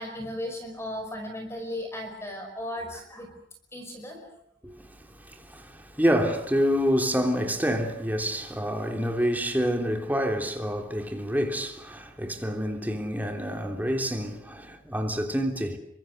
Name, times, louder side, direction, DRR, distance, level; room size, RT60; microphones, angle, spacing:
voice 1, 0.0-3.3 3.7-4.3, left 1 dB, 15° left, 5.1 m, -36 dB
voice 2, 4.6-15.8, equal, 10° right, 3.2 m, -27 dB
29.5 x 24.5 x 6.5 m
head